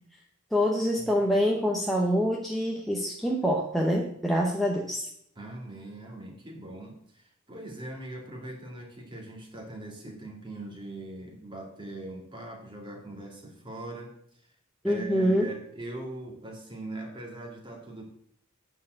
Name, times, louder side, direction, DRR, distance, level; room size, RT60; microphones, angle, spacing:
voice 1, 0.5-5.1 14.8-15.5, equal, ahead, -2 dB, 0.9 m, -26 dB
voice 2, 5.4-14.1 14.4-14.5 14.8-18.0, right 1 dB, 25° right, 0 dB, 2.4 m, -41 dB
9.2 x 4.7 x 7.7 m, 0.69 s
head